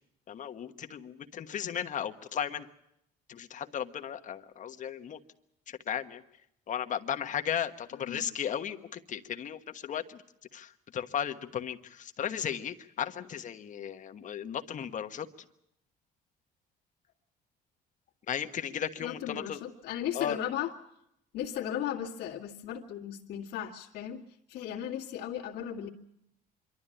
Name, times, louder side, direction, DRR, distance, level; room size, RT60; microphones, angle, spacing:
voice 1, 0.3-2.7 3.3-5.2 5.7-6.2 6.7-10.2 10.5-15.3 18.3-19.6 20.1-20.4, left 9 dB, 50° left, 8 dB, 1.3 m, -35 dB
voice 2, 19.0-20.7 21.3-24.2 24.5-25.9, left 10 dB, 80° left, -2 dB, 2.0 m, -36 dB
26.0 x 12.5 x 10.0 m, 0.80 s
cardioid pair, 110°, 17 cm